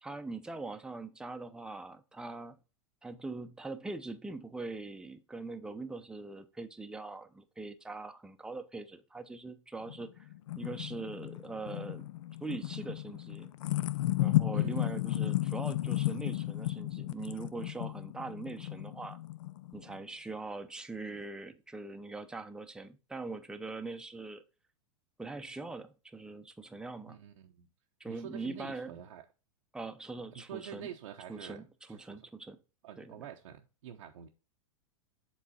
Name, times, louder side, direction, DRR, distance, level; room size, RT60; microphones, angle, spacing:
voice 1, 0.0-2.6 3.0-10.3 10.6-12.1 12.4-13.5 14.2-19.2 19.7-24.4 25.2-27.2 28.0-29.0 29.7-30.9 31.3-32.6 33.0-33.1, right 3 dB, 5° right, 0.6 m, -42 dB
sound 1, 9.9-20.0, left 16 dB, 70° left, 0.5 m, -34 dB
voice 2, 14.5-14.9 27.1-27.7 28.1-29.2 30.3-31.6 31.9-32.3 32.8-34.3, right 9 dB, 70° right, 0.7 m, -47 dB
7.3 x 4.0 x 4.1 m
hypercardioid pair, 100°, 17 cm